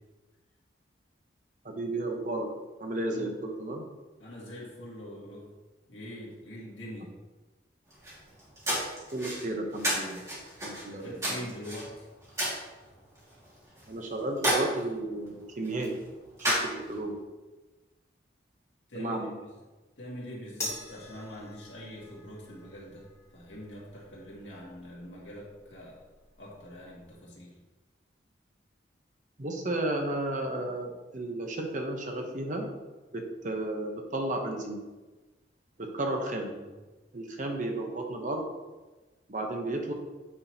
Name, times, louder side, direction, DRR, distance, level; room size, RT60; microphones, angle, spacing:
voice 1, 1.6-2.5 2.8-3.8 9.1-10.2 10.6-11.5 13.9-15.9 16.4-17.1 18.9-19.3 29.4-32.7 33.1-34.8 35.8-36.5 37.1-38.5 39.3-39.9, right 1 dB, 45° right, 2 dB, 0.9 m, -33 dB
voice 2, 4.2-5.5 5.9-7.1 10.8-12.1 18.9-19.3 20.0-23.1 23.3-26.0 26.4-27.5 36.4-36.7, equal, 85° left, -4 dB, 2.1 m, -43 dB
sound 1, 7.9-17.2, equal, 15° right, 2.2 m, -34 dB
sound 2, 20.6-27.2, left 1 dB, 15° left, 1.3 m, -45 dB
8.5 x 4.5 x 2.9 m, 1.2 s
head